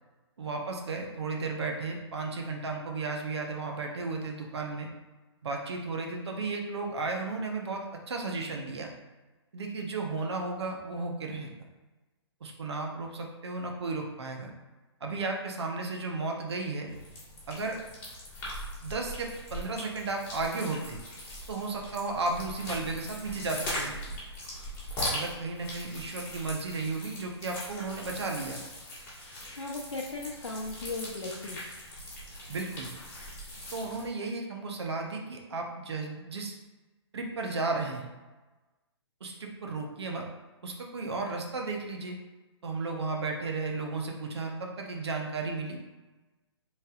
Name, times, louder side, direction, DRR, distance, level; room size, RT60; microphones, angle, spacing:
voice 1, 0.4-4.9 5.4-8.9 9.5-11.5 12.4-14.5 15.0-16.9 17.5-17.8 18.8-21.0 21.5-23.9 25.1-28.6 32.5-32.9 33.7-36.5 37.1-38.1 39.2-40.2 40.6-42.2 42.6-45.8, right 3 dB, 65° right, 1 dB, 0.9 m, -34 dB
mud squish, 16.9-34.1, left 1 dB, 15° left, 1.4 m, -40 dB
voice 2, 29.5-31.7, left 2 dB, 85° left, -2 dB, 0.7 m, -37 dB
5.4 x 3.4 x 2.4 m, 1.2 s
figure-of-eight pair, 130°, 15 cm